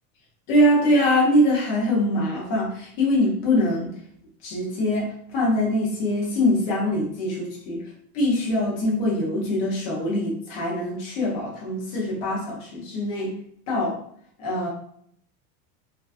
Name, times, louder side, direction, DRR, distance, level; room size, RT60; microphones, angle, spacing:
voice 1, 0.5-3.9 4.4-7.8 8.1-13.3 13.7-14.0 14.4-14.7, left 1 dB, 25° left, -4 dB, 0.4 m, -23 dB
2.4 x 2.4 x 2.3 m, 0.65 s
supercardioid pair, 170°, 45 cm